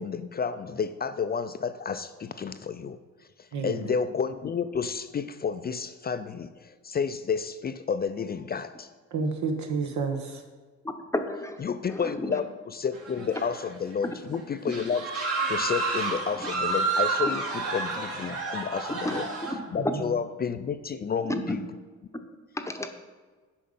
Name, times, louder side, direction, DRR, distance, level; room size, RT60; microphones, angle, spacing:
voice 1, 0.0-3.0 3.4-8.9 11.6-19.3 19.7-21.6, left 6 dB, 30° left, 10 dB, 0.4 m, -31 dB
voice 2, 3.5-3.9 9.1-10.4 19.8-20.0, right 4 dB, 70° right, 5 dB, 1.3 m, -30 dB
voice 3, 11.1-11.6 11.9-12.4 19.0-19.9 21.2-21.6 22.5-22.9, left 1 dB, 10° left, 5 dB, 0.8 m, -31 dB
sound 1, 12.9-13.8 14.1-14.2 14.7-19.5, right 3 dB, 50° right, 2.1 m, -30 dB
8.6 x 5.4 x 5.4 m, 1.4 s
cardioid pair, 90°, 30 cm